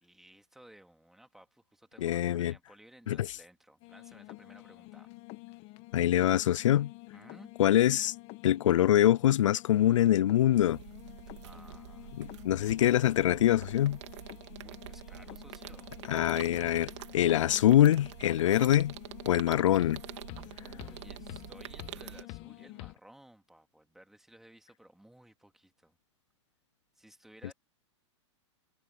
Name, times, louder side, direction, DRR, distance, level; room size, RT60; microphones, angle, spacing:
voice 1, 0.0-5.1 7.1-7.5 11.4-12.2 14.6-15.9 20.6-26.0 27.0-27.5, right 1 dB, ahead, 2.3 m, -57 dB
voice 2, 2.0-2.5 3.1-3.3 5.9-6.9 7.6-8.1 8.4-10.8 12.2-14.0 16.1-18.9 19.3-20.0, left 12 dB, 90° left, 0.4 m, -24 dB
sound 1, 3.8-22.9, left 21 dB, 40° left, 1.4 m, -49 dB
sound 2, 10.5-22.2, right 14 dB, 70° right, 2.8 m, -47 dB
hypercardioid pair, 135°, 16 cm